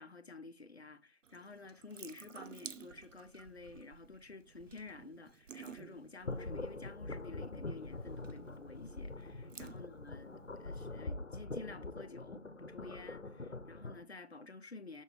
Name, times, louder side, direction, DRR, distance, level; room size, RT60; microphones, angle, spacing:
voice 1, 0.0-15.0, left 3 dB, 60° left, 0.8 m, -51 dB
Water tap faucet / Sink (filling or washing) / Drip, 1.2-11.0, right 6 dB, 90° right, 0.6 m, -55 dB
sound 1, 6.2-14.0, left 2 dB, 80° left, 1.1 m, -44 dB
6.4 x 6.4 x 3.3 m
figure-of-eight pair, 175°, 37 cm